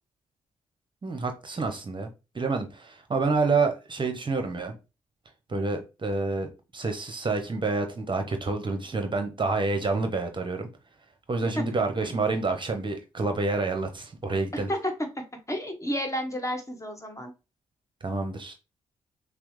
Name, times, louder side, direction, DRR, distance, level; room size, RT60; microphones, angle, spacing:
voice 1, 1.0-2.1 2.3-4.7 5.5-10.7 11.3-14.7 18.0-18.5, right 3 dB, 30° right, 0.8 m, -28 dB
voice 2, 14.5-14.9 15.5-17.3, equal, 20° left, 1.4 m, -31 dB
6.0 x 2.0 x 3.1 m
hypercardioid pair, 40°, 15 cm